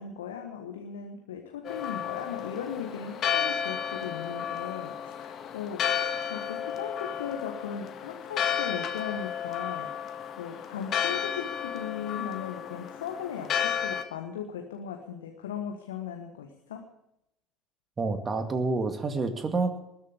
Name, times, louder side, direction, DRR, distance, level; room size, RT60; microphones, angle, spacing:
voice 1, 0.0-16.8, left 8 dB, 75° left, 4 dB, 1.3 m, -38 dB
Church bell, 1.6-14.0, left 8 dB, 45° left, 1.6 m, -32 dB
voice 2, 18.0-19.8, right 3 dB, 30° right, 8 dB, 2.1 m, -28 dB
20.0 x 7.4 x 8.6 m, 0.82 s
figure-of-eight pair, 60°, 0 cm